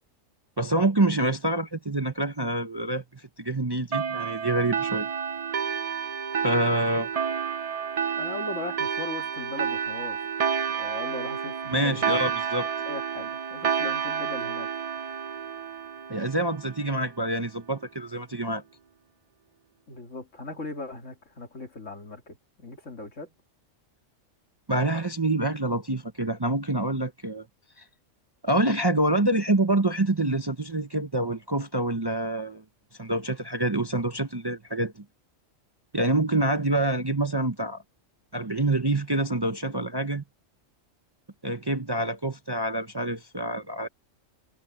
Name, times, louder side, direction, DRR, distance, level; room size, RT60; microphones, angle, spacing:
voice 1, 0.6-5.1 6.4-7.1 11.7-12.7 16.1-18.6 24.7-27.4 28.4-32.6 33.0-35.0 35.9-37.8 38.3-40.2 41.4-43.9, right 1 dB, 20° right, 0.8 m, -26 dB
sound 1, 3.9-17.0, right 7 dB, 50° right, 0.4 m, -30 dB
voice 2, 8.2-10.2 10.7-12.2 12.9-14.7 15.1-15.2 19.9-23.3, left 3 dB, 70° left, 3.0 m, -39 dB
omnidirectional pair, 1.3 m